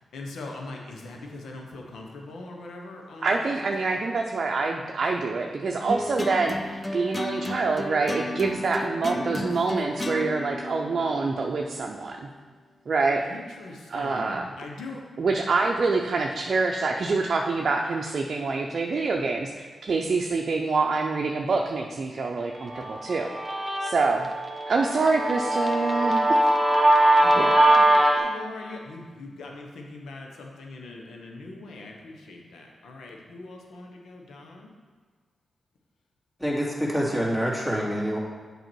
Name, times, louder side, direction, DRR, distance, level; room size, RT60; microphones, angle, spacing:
voice 1, 0.1-3.5 13.2-15.0 27.2-34.7, left 2 dB, 80° left, 0 dB, 1.1 m, -41 dB
voice 2, 3.2-12.3 12.9-13.2 13.9-14.5 15.2-23.3 23.8-24.3 24.7-26.2 26.8-27.5, right 3 dB, 60° right, 1 dB, 0.6 m, -26 dB
sound 1, 5.9-12.3, left 1 dB, 30° left, 0.6 m, -34 dB
Guitar, 22.7-28.2, right 1 dB, 20° right, 1.4 m, -21 dB
voice 3, 36.4-38.2, equal, 15° left, -4 dB, 2.4 m, -26 dB
7.9 x 4.8 x 4.6 m, 1.5 s
supercardioid pair, 45°, 0 cm